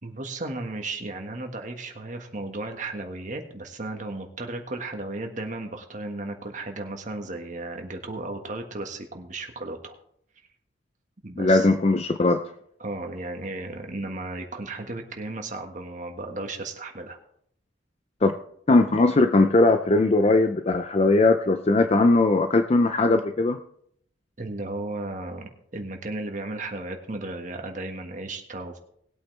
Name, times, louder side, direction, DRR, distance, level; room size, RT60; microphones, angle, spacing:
voice 1, 0.0-9.9 11.2-11.7 12.8-17.2 24.4-28.8, right 2 dB, 40° right, 4 dB, 1.6 m, -35 dB
voice 2, 11.4-12.4 18.2-18.3 18.7-23.6, left 2 dB, 35° left, 7 dB, 0.5 m, -19 dB
19.5 x 8.4 x 3.3 m, 0.69 s
head